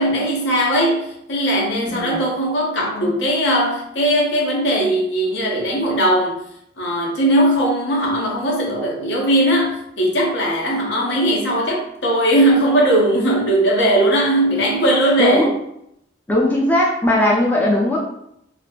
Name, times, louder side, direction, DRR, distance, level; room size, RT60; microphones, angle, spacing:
voice 1, 0.0-6.4 6.8-15.5, right 1 dB, 65° left, -2 dB, 0.6 m, -18 dB
voice 2, 1.9-2.2 15.2-15.5 16.3-18.0, left 1 dB, 10° left, -4 dB, 0.4 m, -18 dB
2.5 x 2.5 x 2.2 m, 0.76 s
head